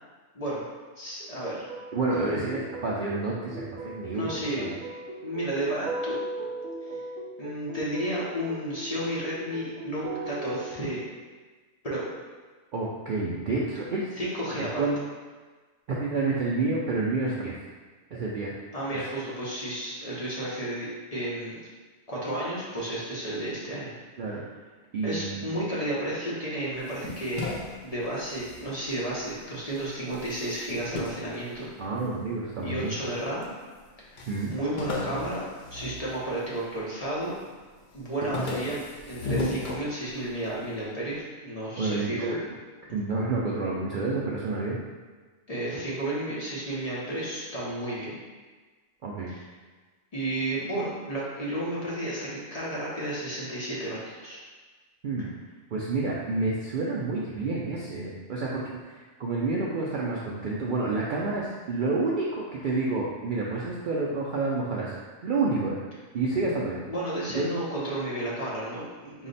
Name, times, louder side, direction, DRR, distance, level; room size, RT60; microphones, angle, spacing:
voice 1, 1.0-1.7 4.1-4.7 5.2-6.2 6.8-7.0 7.4-11.0 11.8-12.0 14.2-14.9 18.7-21.6 22.1-23.9 25.0-27.5 27.8-31.9 32.6-33.5 34.1-34.2 34.5-37.3 37.9-42.3 45.5-48.1 49.3-49.4 50.1-54.4 55.2-55.3 66.9-69.3, right 1 dB, 35° left, -7 dB, 0.7 m, -32 dB
sound 1, 1.7-10.7, right 2 dB, 70° right, 0.9 m, -38 dB
voice 2, 1.9-4.7 12.7-14.1 14.5-15.0 15.9-17.5 18.1-18.5 18.9-19.0 24.2-24.4 24.9-25.4 31.8-32.9 34.3-34.6 38.3-38.4 41.8-42.4 42.9-44.8 49.0-49.3 55.0-55.3 55.7-65.0 65.2-65.8 66.1-66.8 67.3-67.5, right 3 dB, 85° right, -5 dB, 0.4 m, -29 dB
sound 2, 26.8-29.4 29.7-32.2 32.8-33.5 33.8-33.9 34.2-36.8 37.1-37.6 37.9-40.5, left 2 dB, 70° left, 0.4 m, -36 dB
4.7 x 2.1 x 3.9 m, 1.4 s
omnidirectional pair, 1.4 m